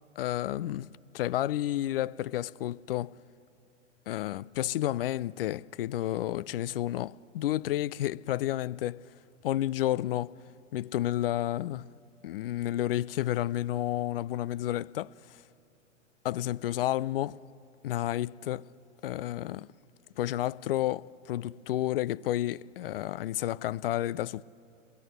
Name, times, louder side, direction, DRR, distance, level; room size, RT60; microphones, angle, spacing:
voice 1, 0.2-0.9 1.1-3.2 4.1-9.0 9.4-10.3 10.7-11.9 12.2-15.4 16.2-17.4 17.8-18.7 19.0-19.7 20.2-24.4, left 13 dB, 50° left, 0.5 m, -31 dB
22.5 x 22.0 x 7.9 m
hypercardioid pair, 115°, 38 cm